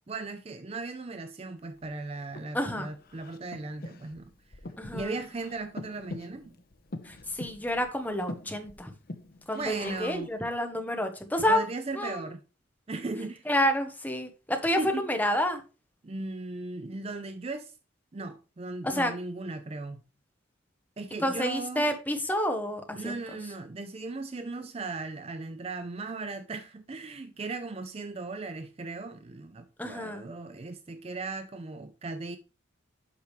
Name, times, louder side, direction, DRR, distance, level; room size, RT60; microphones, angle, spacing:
voice 1, 0.1-4.3 4.9-6.5 9.5-10.3 11.5-12.4 12.9-13.5 14.6-15.0 16.0-17.7 18.1-20.0 21.0-21.9 22.9-32.4, right 3 dB, 30° right, 0.4 m, -37 dB
Breathing, 1.8-10.3, left 2 dB, 50° left, 0.8 m, -44 dB
voice 2, 2.5-2.9 4.8-5.2 7.0-8.9 9.5-11.6 11.9-12.2 13.5-15.6 18.8-19.1 21.2-23.1 29.8-30.3, equal, 10° left, 1.0 m, -29 dB
8.3 x 6.0 x 3.2 m
head